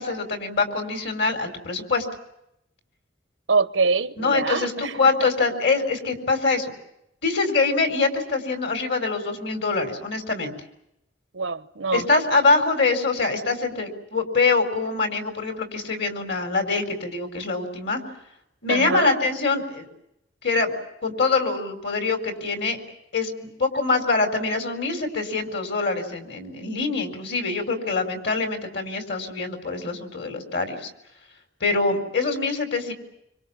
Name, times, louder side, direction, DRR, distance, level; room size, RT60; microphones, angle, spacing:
voice 1, 0.0-2.1 4.2-6.7 7.2-10.5 11.9-18.0 18.6-19.9 20.4-20.7 21.0-22.8 23.1-30.9 31.6-32.9, left 3 dB, 60° left, 4.7 m, -24 dB
voice 2, 3.5-4.9 11.3-12.0 18.7-19.2, right 4 dB, 85° right, 1.0 m, -24 dB
26.0 x 26.0 x 7.4 m
head